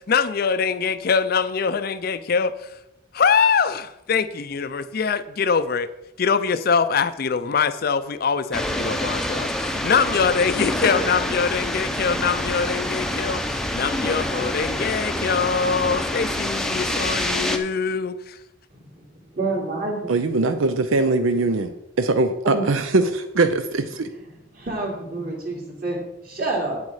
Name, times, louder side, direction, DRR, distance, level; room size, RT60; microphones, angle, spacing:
voice 1, 0.0-2.5 3.1-5.9 6.2-18.4, left 5 dB, 45° left, 0.4 m, -23 dB
sound 1, 8.5-17.6, left 1 dB, 5° left, 0.6 m, -26 dB
voice 2, 18.7-20.1 22.4-22.6 24.0-24.1 24.5-26.8, right 2 dB, 45° right, 2.8 m, -28 dB
voice 3, 20.1-24.1, right 3 dB, 80° right, 0.6 m, -21 dB
8.5 x 8.1 x 4.8 m
head